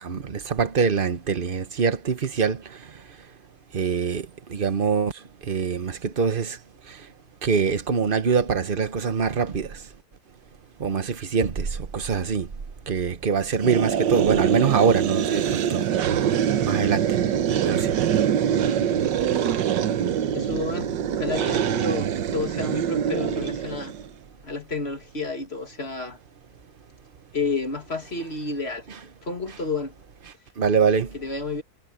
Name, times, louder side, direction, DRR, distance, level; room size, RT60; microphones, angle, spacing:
voice 1, 0.0-3.0 3.7-6.6 6.9-7.1 7.4-9.9 10.8-12.5 12.9-15.9 16.6-17.2 17.6-17.9 30.6-31.2, right 6 dB, 35° right, 1.0 m, -24 dB
sound 1, 13.6-24.1, right 9 dB, 85° right, 1.6 m, -24 dB
voice 2, 20.3-23.9 24.4-26.2 27.3-28.9 29.2-30.0 31.1-31.6, left 3 dB, 35° left, 2.6 m, -30 dB
omnidirectional pair, 1.9 m